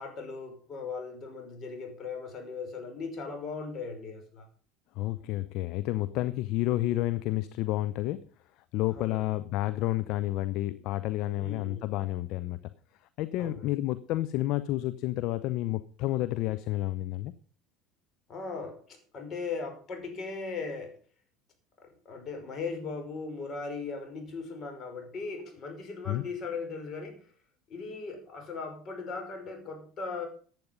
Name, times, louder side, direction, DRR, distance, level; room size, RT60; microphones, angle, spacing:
voice 1, 0.0-4.5 8.9-9.3 11.4-11.9 13.4-13.7 18.3-21.0 21.8-27.2 27.7-30.3, left 4 dB, 40° left, 4 dB, 5.6 m, -38 dB
voice 2, 4.9-8.3 8.7-12.7 13.2-17.3 26.1-26.2, left 16 dB, 55° left, 13 dB, 0.7 m, -30 dB
15.0 x 9.5 x 5.4 m, 0.42 s
figure-of-eight pair, 70°, 0 cm